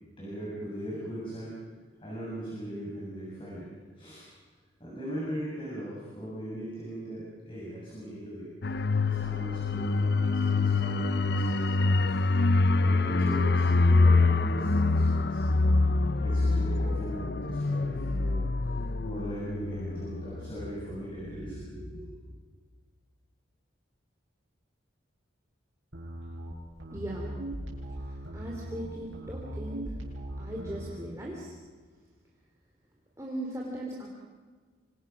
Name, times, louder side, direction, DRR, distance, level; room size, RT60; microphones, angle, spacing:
voice 1, 0.2-1.6 2.0-3.7 4.0-4.3 4.8-12.2 12.8-15.4 16.2-22.2, right 1 dB, 25° left, -6 dB, 7.5 m, -39 dB
sound 1, 8.6-21.0 21.3-21.5, left 3 dB, 55° left, 0.7 m, -25 dB
sound 2, 25.9-31.0, right 1 dB, 85° right, 7.6 m, -39 dB
voice 2, 26.9-27.3 28.0-30.0 30.4-31.5 33.2-34.1, right 1 dB, 15° right, -2 dB, 3.3 m, -38 dB
26.5 x 26.5 x 6.1 m, 1.5 s
head